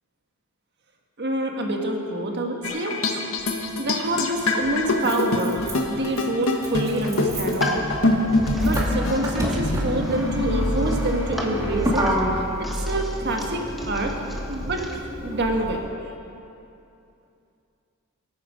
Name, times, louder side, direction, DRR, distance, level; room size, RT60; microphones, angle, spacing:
voice 1, 1.2-2.9 3.6-7.8 8.5-12.1 12.6-14.1 14.5-14.9 15.2-15.9, right 1 dB, 55° right, 2 dB, 1.6 m, -27 dB
sound 1, 2.6-12.1, left 2 dB, 80° left, 1.4 m, -26 dB
Motor vehicle (road), 3.4-3.5 4.6-15.8, equal, 15° right, 2.3 m, -28 dB
sound 2, 7.4-15.0, equal, ahead, 1.3 m, -36 dB
23.0 x 9.3 x 5.2 m, 2.7 s
head